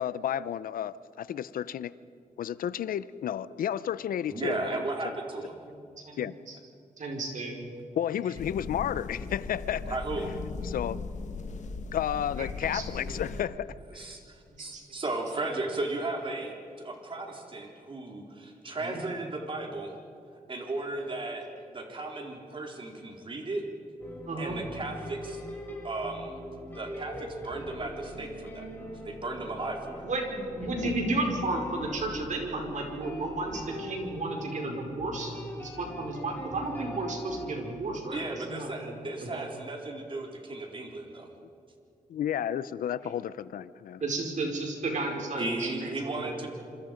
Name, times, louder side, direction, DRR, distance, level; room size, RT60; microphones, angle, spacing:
voice 1, 0.0-1.9 2.4-4.8 5.0-5.2 6.2-6.4 8.0-10.0 10.6-11.0 11.9-14.1 42.1-44.0, left 10 dB, 90° left, 16 dB, 0.7 m, -32 dB
voice 2, 4.3-5.5 9.8-10.4 13.9-19.9 20.5-23.6 24.4-25.4 25.8-26.4 26.7-28.6 29.0-30.0 38.1-41.3 45.4-46.5, right 2 dB, 35° right, 1 dB, 4.1 m, -35 dB
voice 3, 6.0-6.5 7.0-7.7 12.4-12.5 12.7-13.1 14.7-14.8 18.8-19.0 24.2-24.6 30.0-30.3 30.6-38.9 39.3-39.4 44.0-46.5, right 2 dB, 60° right, 1 dB, 5.1 m, -33 dB
sound 1, 8.3-13.4, left 4 dB, 60° left, 1.7 m, -38 dB
sound 2, 24.0-37.6, equal, 15° left, 7.0 m, -41 dB
27.0 x 26.5 x 5.2 m, 2.4 s
cardioid pair, 105°, 14 cm